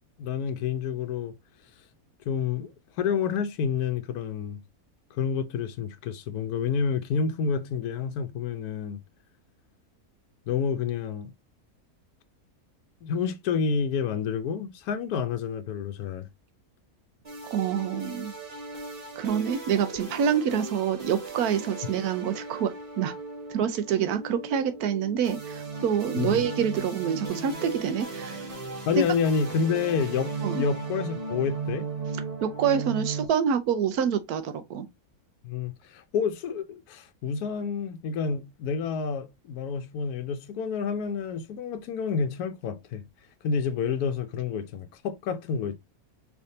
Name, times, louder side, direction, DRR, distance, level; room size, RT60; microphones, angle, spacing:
voice 1, 0.2-1.3 2.3-2.7 3.0-4.6 5.1-9.0 10.5-11.3 13.0-16.3 26.2-26.4 28.9-31.8 35.4-43.0 43.4-45.7, left 6 dB, 80° left, 1.2 m, -29 dB
sound 1, 17.2-33.3, right 4 dB, 30° right, 1.0 m, -36 dB
voice 2, 17.5-18.3 19.2-23.1 23.5-28.4 29.0-29.1 30.4-30.6 32.4-34.9, right 8 dB, 80° right, 1.1 m, -27 dB
4.9 x 3.5 x 2.7 m
omnidirectional pair, 1.6 m